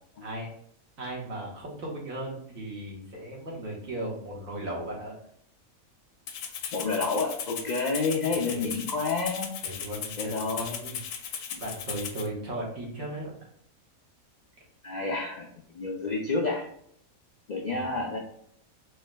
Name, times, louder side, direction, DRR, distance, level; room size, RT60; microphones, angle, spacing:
voice 1, 1.0-5.1 8.5-8.7 9.6-13.3 17.7-17.8, right 1 dB, 70° right, -3 dB, 1.6 m, -37 dB
Rattle (instrument), 6.3-12.3, left 7 dB, 75° left, 0.9 m, -37 dB
voice 2, 6.7-9.5 10.2-11.0 14.8-15.5 15.7-16.6 17.5-18.2, left 3 dB, 90° left, 0 dB, 0.3 m, -29 dB
4.5 x 3.1 x 2.2 m, 0.68 s
omnidirectional pair, 1.5 m